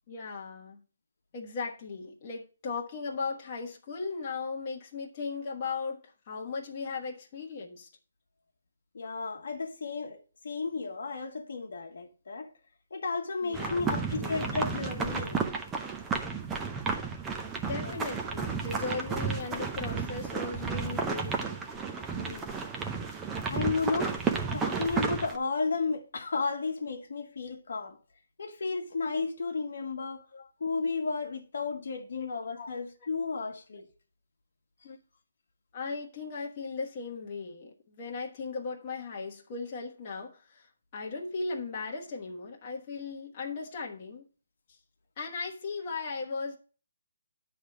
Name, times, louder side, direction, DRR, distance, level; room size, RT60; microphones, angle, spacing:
voice 1, 0.1-0.8 1.3-7.9 13.4-14.6 17.5-21.6 30.3-30.5 32.1-32.3 32.6-32.7 34.8-35.0 35.7-44.2 44.7-44.8 45.2-46.6, left 4 dB, 30° left, 1.3 m, -37 dB
voice 2, 8.9-12.5 12.9-15.4 17.8-18.0 22.1-22.6 23.5-24.2 24.5-28.0 28.4-30.2 30.6-33.9, left 4 dB, 60° left, 1.3 m, -33 dB
sound 1, 13.5-25.4, right 5 dB, 10° right, 0.6 m, -32 dB
10.0 x 3.4 x 7.1 m
hypercardioid pair, 170°, 0 cm